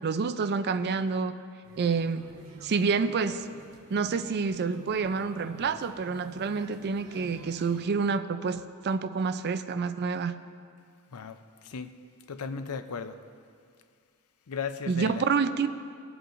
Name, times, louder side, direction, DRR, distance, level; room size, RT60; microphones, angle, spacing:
voice 1, 0.0-1.3 1.8-2.3 2.6-3.5 3.9-10.3 14.9-15.7, right 5 dB, 45° right, 11 dB, 0.4 m, -28 dB
sound 1, 1.6-7.8, right 2 dB, 85° right, 2.3 m, -50 dB
voice 2, 12.3-13.2 14.5-15.2, left 5 dB, 75° left, 10 dB, 0.5 m, -35 dB
20.5 x 8.0 x 2.6 m, 2.2 s
head